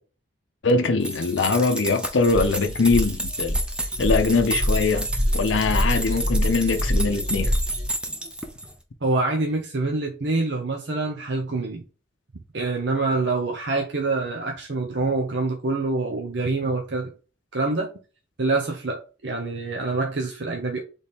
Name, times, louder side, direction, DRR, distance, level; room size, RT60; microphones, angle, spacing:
voice 1, 0.6-3.6 4.0-5.1 5.3-7.6, left 3 dB, 85° left, 0.6 m, -22 dB
sound 1, 1.0-8.8, right 1 dB, 5° right, 0.5 m, -32 dB
sound 2, 2.2-7.9, equal, 25° right, 2.0 m, -26 dB
voice 2, 9.0-11.8 12.5-17.1 17.5-17.9 18.4-20.8, right 3 dB, 70° right, 0.8 m, -26 dB
4.2 x 3.4 x 3.5 m
head